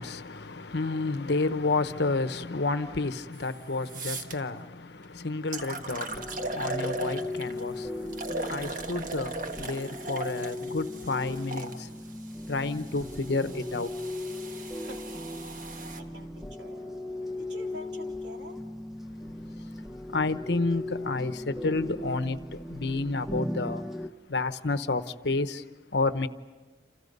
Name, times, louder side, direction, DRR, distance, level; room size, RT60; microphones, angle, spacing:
voice 1, 0.0-4.8 5.1-6.1 6.5-7.9 8.5-9.3 9.6-11.7 12.5-13.9 20.1-22.4 22.7-23.8 24.3-25.6 25.9-26.3, left 3 dB, 65° left, 1.0 m, -30 dB
sound 1, 3.4-3.5 3.9-4.3 5.0-5.1 5.5-7.6 8.1-11.7 12.6-16.0, right 2 dB, 45° right, 1.5 m, -38 dB
sound 2, 6.1-24.1, left 1 dB, ahead, 0.7 m, -38 dB
voice 2, 14.8-15.1 15.7-16.8 17.4-18.6, right 1 dB, 70° right, 3.6 m, -47 dB
30.0 x 28.5 x 5.4 m
head